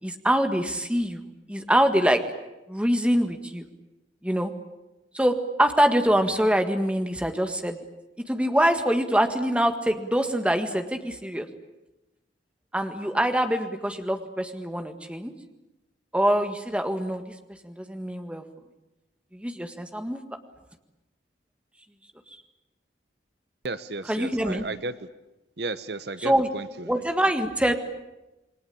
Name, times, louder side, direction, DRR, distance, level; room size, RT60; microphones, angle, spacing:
voice 1, 0.0-2.2 2.7-3.6 4.2-4.5 5.1-7.8 8.3-11.5 12.7-15.3 16.1-17.2 17.6-18.4 19.3-20.2 24.1-24.6 26.2-26.5 26.9-27.7, equal, 5° right, 6 dB, 1.8 m, -24 dB
voice 2, 23.6-25.1 25.6-27.1, right 3 dB, 60° right, 13 dB, 1.0 m, -34 dB
28.5 x 22.0 x 8.6 m, 0.98 s
head